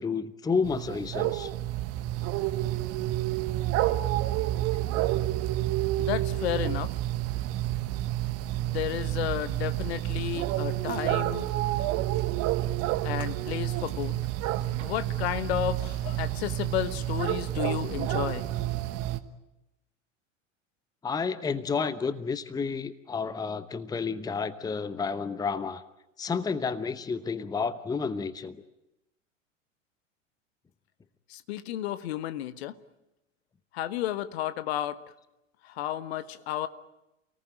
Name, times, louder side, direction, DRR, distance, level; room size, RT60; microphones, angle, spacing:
voice 1, 0.0-1.5 21.0-25.8 26.2-28.6, left 5 dB, 10° left, 14 dB, 0.9 m, -30 dB
sound 1, 0.6-19.2, right 15 dB, 40° right, 1.4 m, -29 dB
voice 2, 6.0-6.9 8.6-11.5 13.0-14.2 14.8-18.5 31.3-32.8 33.7-35.0 35.6-36.7, left 12 dB, 55° left, 13 dB, 1.3 m, -32 dB
29.0 x 18.5 x 9.1 m, 0.93 s
figure-of-eight pair, 85°, 38 cm